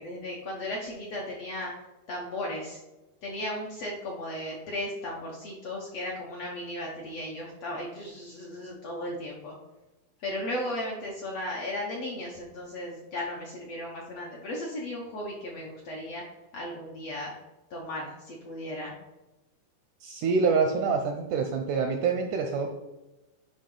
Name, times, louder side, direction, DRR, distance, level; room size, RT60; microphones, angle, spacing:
voice 1, 0.0-1.7 2.1-2.8 3.2-9.6 10.2-16.2 16.5-17.3 17.7-18.9, left 1 dB, 65° left, -2 dB, 1.6 m, -36 dB
voice 2, 20.0-22.7, right 5 dB, 80° right, 4 dB, 1.8 m, -26 dB
10.5 x 5.3 x 3.8 m, 1.0 s
omnidirectional pair, 4.2 m